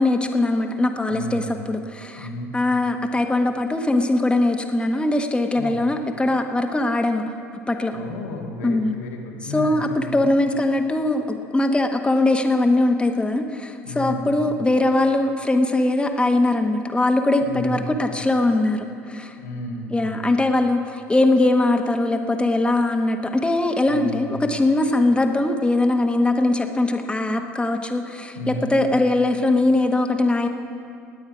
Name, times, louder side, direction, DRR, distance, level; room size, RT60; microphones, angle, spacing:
voice 1, 0.0-7.2 7.7-8.0 8.6-8.9 9.5-19.3 19.9-30.5, left 2 dB, 10° left, 4 dB, 1.2 m, -21 dB
voice 2, 1.1-1.4 2.2-2.5 5.5-5.8 7.9-10.1 13.8-14.3 17.4-17.8 19.4-20.1 23.9-24.4 28.3-28.7, left 2 dB, 85° left, -1 dB, 1.8 m, -32 dB
20.0 x 8.7 x 4.9 m, 2.4 s
hypercardioid pair, 65°, 8 cm